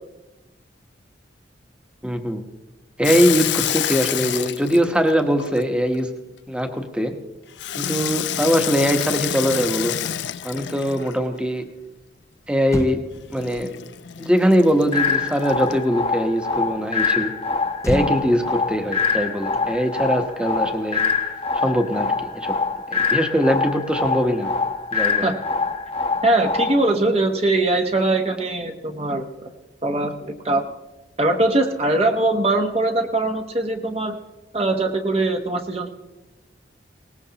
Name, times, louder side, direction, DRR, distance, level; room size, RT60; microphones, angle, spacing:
voice 1, 2.0-2.4 3.0-6.1 6.5-7.2 7.8-9.9 10.4-11.6 12.5-13.0 13.3-13.7 14.2-17.3 17.8-21.0 21.5-22.5 22.9-24.5 24.9-25.3, equal, 5° right, 5 dB, 1.0 m, -21 dB
Water tap faucet / Sink (filling or washing), 3.0-6.0 7.6-11.3 13.3-15.8, left 11 dB, 80° left, 0.5 m, -28 dB
Motor vehicle (road), 12.2-12.3 12.6-16.2 17.8-20.4 20.7-20.9, left 1 dB, 15° left, 0.4 m, -34 dB
sound 1, 14.9-26.9, left 4 dB, 35° left, 0.9 m, -24 dB
voice 2, 26.2-29.5 29.8-30.6 31.2-34.2 34.5-35.9, right 2 dB, 35° right, 5 dB, 0.9 m, -21 dB
20.5 x 18.5 x 2.9 m, 1.1 s
head